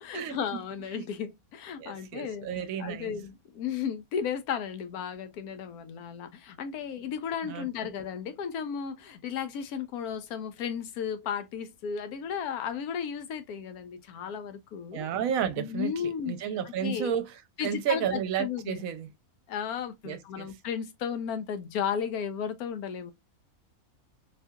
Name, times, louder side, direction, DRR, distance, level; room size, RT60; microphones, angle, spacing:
voice 1, 0.0-15.1 15.6-16.4 16.6-17.1 17.6-18.8 19.5-23.1, left 7 dB, 85° left, 1.2 m, -34 dB
voice 2, 1.8-3.1 7.4-7.7 14.9-15.9 16.3-19.1 20.0-20.5, right 8 dB, 70° right, 1.0 m, -32 dB
4.1 x 2.7 x 2.3 m
omnidirectional pair, 1.5 m